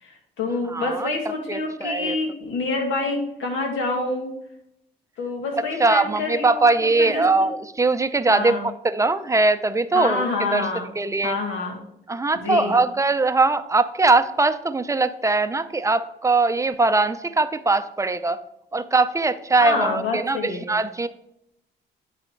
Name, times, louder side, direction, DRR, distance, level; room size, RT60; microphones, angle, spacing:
voice 1, 0.0-4.3 5.2-6.6 7.0-7.5 8.3-8.6 9.9-10.9 11.2-11.8 12.3-12.8 19.6-20.7, left 3 dB, 80° left, 2 dB, 1.9 m, -27 dB
voice 2, 0.7-1.1 1.5-2.1 5.8-10.3 10.5-10.7 11.0-11.3 12.1-18.4 18.7-20.4 20.7-21.1, right 3 dB, 15° right, 11 dB, 0.5 m, -21 dB
10.0 x 4.2 x 4.6 m, 0.79 s
cardioid pair, 90°, 20 cm